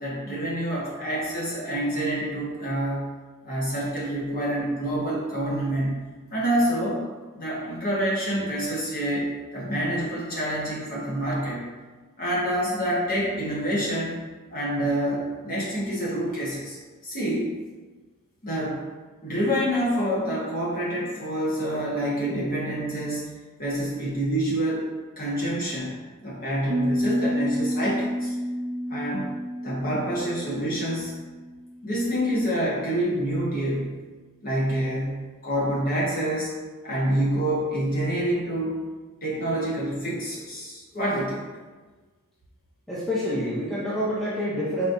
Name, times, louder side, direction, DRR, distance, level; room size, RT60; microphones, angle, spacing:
voice 1, 0.0-3.1 3.4-6.0 6.3-7.0 7.3-11.6 12.2-14.2 14.5-16.8 17.0-17.5 18.4-18.9 19.2-23.3 23.6-24.9 25.2-28.3 28.9-29.3 29.6-31.2 31.8-34.0 34.4-36.5 36.8-38.8 39.2-41.5, right 1 dB, 40° left, -6 dB, 1.3 m, -27 dB
Piano, 26.7-32.3, equal, 35° right, 0.4 m, -30 dB
voice 2, 42.9-44.9, equal, ahead, -9 dB, 0.6 m, -27 dB
4.1 x 4.0 x 2.7 m, 1.3 s
head